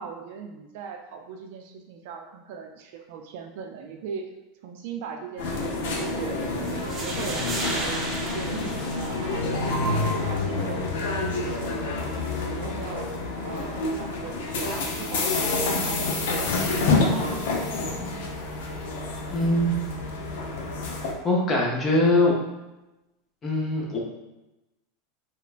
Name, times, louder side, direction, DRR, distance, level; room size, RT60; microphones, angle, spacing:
voice 1, 0.0-4.3 4.6-6.5 6.7-9.7 10.2-11.8 12.3-17.8, right 6 dB, 65° right, 4 dB, 0.3 m, -39 dB
sound 1, 5.4-21.1, left 3 dB, 75° left, 0.5 m, -28 dB
sound 2, 6.6-9.7, right 2 dB, 25° right, 0.6 m, -34 dB
voice 2, 19.3-19.8 21.2-22.3 23.4-24.0, left 1 dB, 25° left, -2 dB, 0.6 m, -22 dB
2.9 x 2.2 x 2.4 m, 0.99 s
supercardioid pair, 130°, 0 cm